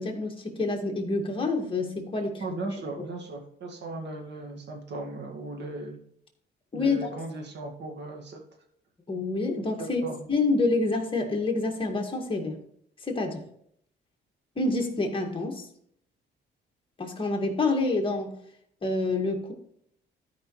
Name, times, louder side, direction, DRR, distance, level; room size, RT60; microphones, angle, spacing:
voice 1, 0.0-2.4 6.7-7.1 9.1-10.0 10.3-12.6 13.0-13.4 14.6-15.7 17.0-18.4 18.8-19.5, left 3 dB, 25° left, 2 dB, 2.1 m, -27 dB
voice 2, 2.4-6.0 6.7-8.4 9.8-10.2, right 2 dB, 60° right, 2 dB, 2.0 m, -37 dB
13.0 x 5.3 x 3.2 m, 0.69 s
cardioid pair, 90°, 20 cm